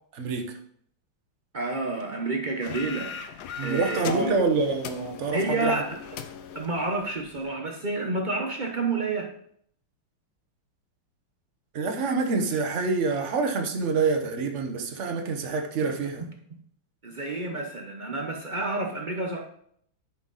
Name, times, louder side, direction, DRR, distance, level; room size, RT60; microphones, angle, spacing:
voice 1, 0.1-0.5 3.6-5.8 11.7-16.2, right 4 dB, 45° right, 5 dB, 1.0 m, -26 dB
voice 2, 1.5-4.4 5.3-5.9 6.5-9.3 15.8-15.9 17.0-19.4, right 3 dB, 70° right, 1 dB, 0.4 m, -29 dB
sound 1, 2.6-7.5, left 6 dB, 70° left, 0.9 m, -39 dB
10.0 x 5.5 x 4.0 m, 0.66 s
omnidirectional pair, 2.4 m